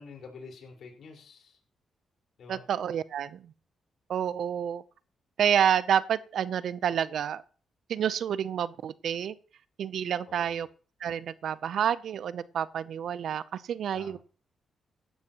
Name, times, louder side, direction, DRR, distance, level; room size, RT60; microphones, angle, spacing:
voice 1, 0.0-1.6 2.4-2.6 10.3-10.6 13.9-14.2, left 4 dB, 70° left, 4.8 m, -47 dB
voice 2, 2.5-3.5 4.1-4.8 5.4-7.4 7.9-9.3 9.8-10.7 11.0-14.2, right 9 dB, 70° right, 0.7 m, -29 dB
16.5 x 12.0 x 3.0 m
supercardioid pair, 55°, 0 cm